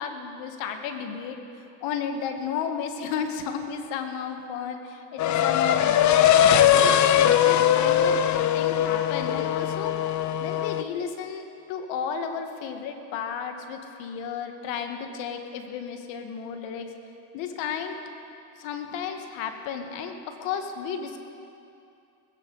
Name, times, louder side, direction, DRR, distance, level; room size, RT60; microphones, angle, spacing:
voice 1, 0.0-1.4 1.8-6.4 6.7-8.2 8.5-10.0 10.4-16.9 17.3-18.0 18.6-21.2, left 7 dB, 85° left, 6 dB, 1.6 m, -33 dB
sound 1, 5.2-10.8, left 10 dB, 40° left, 0.6 m, -20 dB
20.0 x 16.5 x 4.0 m, 2.7 s
cardioid pair, 120°, 44 cm